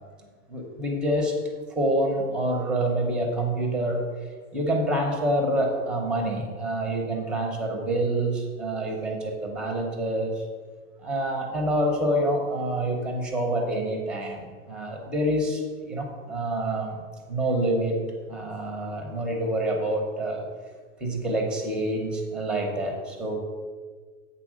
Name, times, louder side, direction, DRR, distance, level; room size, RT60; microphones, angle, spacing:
voice 1, 0.5-1.3 1.7-4.0 4.5-10.4 11.0-17.0 17.3-18.0 18.3-20.4 21.0-23.4, right 1 dB, ahead, 2 dB, 0.6 m, -27 dB
8.2 x 4.1 x 6.2 m, 1.5 s
supercardioid pair, 175°, 38 cm